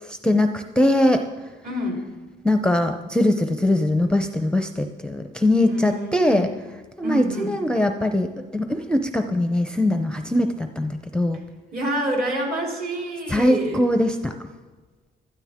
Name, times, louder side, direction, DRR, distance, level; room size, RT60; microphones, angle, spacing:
voice 1, 0.0-1.3 2.4-6.5 7.0-11.4 13.3-14.4, left 1 dB, 5° left, 7 dB, 0.7 m, -21 dB
voice 2, 1.6-2.0 5.7-6.5 7.0-7.6 11.7-13.8, right 1 dB, 50° right, -1 dB, 3.8 m, -27 dB
16.5 x 12.5 x 3.7 m, 1.3 s
cardioid pair, 90°, 20 cm